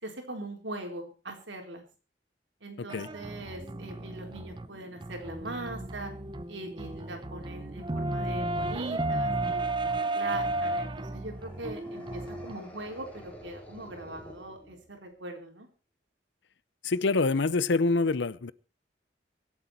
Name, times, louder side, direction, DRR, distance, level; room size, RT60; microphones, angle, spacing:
voice 1, 0.0-1.8 2.6-6.1 6.5-15.7, right 2 dB, 80° right, 4.1 m, -41 dB
voice 2, 2.8-3.1 16.8-18.5, left 3 dB, 70° left, 0.6 m, -26 dB
sound 1, 2.9-12.5, right 2 dB, 25° right, 0.7 m, -33 dB
sound 2, 11.3-15.1, equal, 5° left, 3.8 m, -49 dB
24.0 x 8.2 x 4.4 m
head